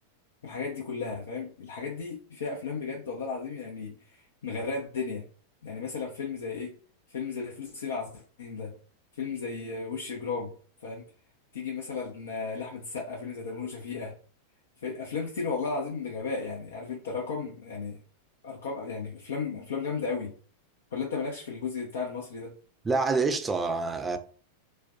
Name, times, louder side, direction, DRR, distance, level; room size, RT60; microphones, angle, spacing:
voice 1, 0.4-5.2 5.6-6.7 7.1-8.7 9.1-10.5 10.8-11.0 11.5-14.1 14.8-18.0 18.4-20.3 20.9-22.5, left 4 dB, 65° left, 0.5 m, -34 dB
voice 2, 22.8-24.2, right 4 dB, 15° right, 0.3 m, -27 dB
2.4 x 2.1 x 2.4 m
figure-of-eight pair, 90°, 0 cm